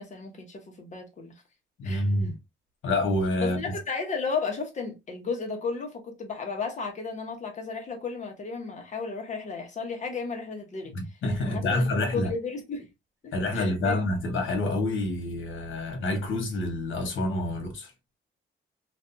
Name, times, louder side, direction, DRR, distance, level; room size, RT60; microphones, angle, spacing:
voice 1, 0.0-1.3 1.8-2.1 3.3-10.9 11.4-12.9 13.2-14.0, left 4 dB, 35° left, 0.8 m, -34 dB
voice 2, 1.8-2.3 2.8-3.6 10.9-12.3 13.3-17.9, left 1 dB, 80° left, 1.0 m, -27 dB
2.5 x 2.2 x 2.5 m
cardioid pair, 140°, 20 cm